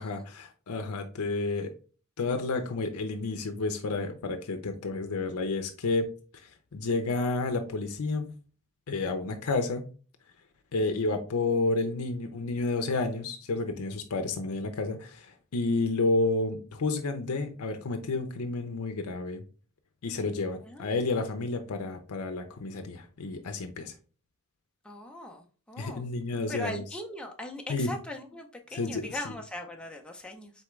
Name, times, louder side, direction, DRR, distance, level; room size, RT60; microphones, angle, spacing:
voice 1, 0.0-1.7 2.2-6.1 6.7-8.3 8.9-9.9 10.7-19.4 20.0-23.9 25.8-26.8 27.7-27.9 28.7-29.2, left 3 dB, 80° left, 0.6 m, -30 dB
voice 2, 24.8-26.1 26.5-30.5, left 1 dB, 5° left, 0.6 m, -40 dB
4.2 x 3.4 x 3.1 m
head